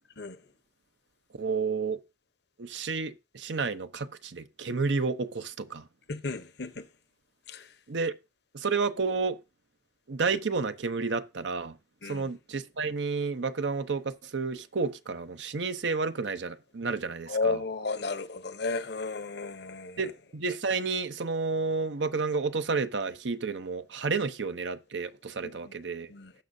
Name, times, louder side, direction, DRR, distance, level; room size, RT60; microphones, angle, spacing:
voice 1, 1.3-2.0 2.6-5.9 7.9-8.1 8.5-9.4 10.1-11.8 12.0-17.6 20.0-26.1, right 4 dB, 75° right, 0.8 m, -31 dB
voice 2, 6.1-6.9 7.5-7.7 12.0-12.3 17.3-20.1 25.4-25.7 26.1-26.3, left 3 dB, 60° left, 0.9 m, -33 dB
18.5 x 6.2 x 2.7 m
head